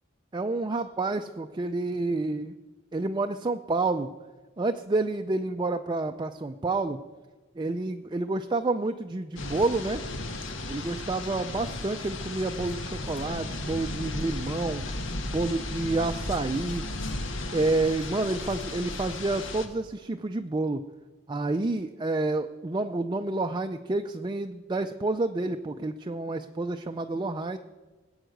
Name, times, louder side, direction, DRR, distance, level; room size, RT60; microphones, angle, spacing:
voice 1, 0.3-2.5 2.9-4.1 4.6-7.0 7.6-10.0 10.7-14.9 15.2-16.8 17.5-20.8 21.3-27.6, right 2 dB, 25° right, 6 dB, 0.4 m, -29 dB
sound 1, 9.4-19.7, left 2 dB, 70° left, 1.5 m, -35 dB
19.0 x 8.0 x 7.9 m, 1.3 s
head